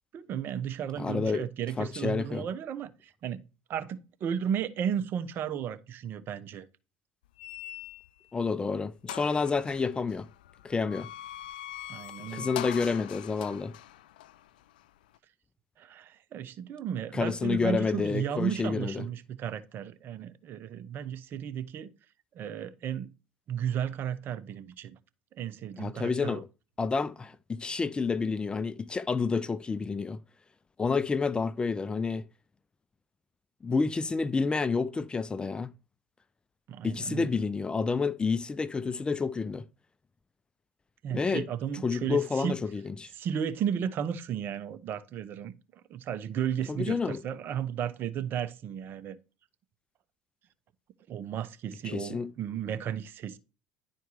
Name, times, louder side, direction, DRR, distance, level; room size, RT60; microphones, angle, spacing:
voice 1, 0.1-3.4 3.7-6.7 11.9-12.5 15.8-21.9 22.3-23.1 23.5-25.0 25.4-26.4 36.7-37.3 41.0-42.6 43.1-45.5 45.9-49.2 51.1-53.4, right 8 dB, 50° right, 0.9 m, -34 dB
voice 2, 1.0-1.4 1.8-2.5 8.3-10.3 10.6-11.1 12.3-13.7 17.1-19.1 25.8-26.5 26.8-30.2 30.8-32.2 33.6-35.7 36.8-39.6 41.1-41.5 41.8-43.1 46.7-47.2 51.8-52.3, left 4 dB, 20° left, 0.4 m, -29 dB
sound 1, 7.4-8.3 8.7-8.8 9.1-15.2, left 13 dB, 90° left, 0.4 m, -43 dB
10.5 x 4.5 x 4.8 m
supercardioid pair, 90°, 5 cm